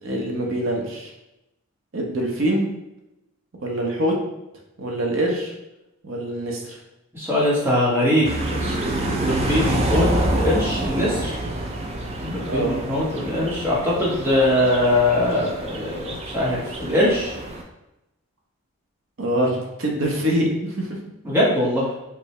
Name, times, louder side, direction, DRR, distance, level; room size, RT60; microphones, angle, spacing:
voice 1, 0.0-1.1 1.9-2.7 3.6-4.2 4.8-5.5 6.0-6.8 12.5-12.8 19.2-21.0, right 1 dB, 60° right, 0 dB, 0.7 m, -24 dB
voice 2, 7.1-11.4 12.2-17.3 21.2-21.9, left 1 dB, 10° right, -6 dB, 0.8 m, -22 dB
sound 1, 8.2-17.6, right 1 dB, 25° right, 0.3 m, -27 dB
4.4 x 2.0 x 3.1 m, 0.93 s
head